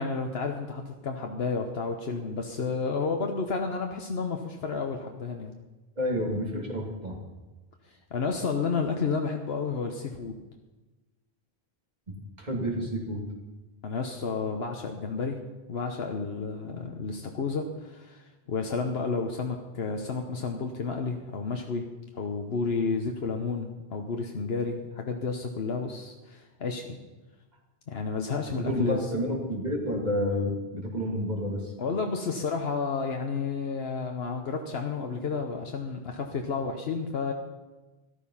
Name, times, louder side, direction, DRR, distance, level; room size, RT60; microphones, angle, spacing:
voice 1, 0.0-5.5 8.1-10.4 13.8-15.4 15.7-21.9 22.1-27.0 27.9-29.0 31.8-37.3, left 4 dB, 80° left, 3 dB, 1.2 m, -31 dB
voice 2, 6.0-7.2 12.1-13.2 28.5-31.7, equal, 45° right, 0 dB, 2.7 m, -30 dB
13.5 x 12.5 x 5.6 m, 1.2 s
omnidirectional pair, 1.0 m